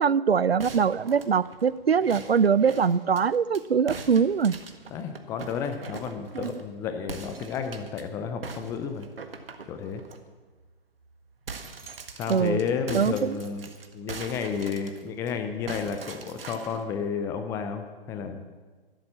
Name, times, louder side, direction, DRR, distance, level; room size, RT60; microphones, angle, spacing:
voice 1, 0.0-4.6 6.3-6.6 12.3-12.6 12.9-13.4, right 6 dB, 85° right, 20 dB, 0.5 m, -23 dB
sound 1, 0.6-3.6 3.9-6.7 7.1-8.0 8.4-10.2 10.6-10.7 11.0-15.3 15.7-16.8, right 4 dB, 70° right, 1.6 m, -42 dB
voice 2, 4.9-9.1 9.7-10.0 12.2-13.7 13.9-18.4, left 6 dB, 10° left, 7 dB, 0.4 m, -32 dB
12.5 x 12.0 x 7.3 m, 1.4 s
figure-of-eight pair, 120°, 30 cm